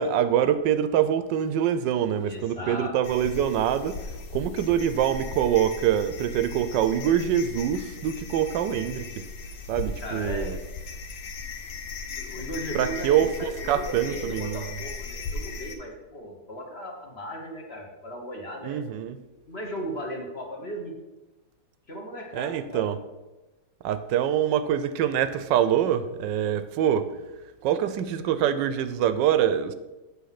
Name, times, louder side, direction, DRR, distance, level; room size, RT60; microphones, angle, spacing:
voice 1, 0.0-4.0 4.3-9.3 9.7-10.6 12.7-14.7 18.6-19.2 22.3-23.0 23.8-27.1 27.6-29.7, right 9 dB, 85° right, 12 dB, 1.3 m, -25 dB
voice 2, 2.2-2.9 10.0-10.6 12.1-18.8 19.5-20.9 21.9-22.9, equal, 40° left, 0 dB, 1.4 m, -37 dB
sound 1, 3.0-15.8, left 4 dB, 80° left, 1.5 m, -37 dB
7.8 x 5.8 x 5.8 m, 1.1 s
omnidirectional pair, 1.9 m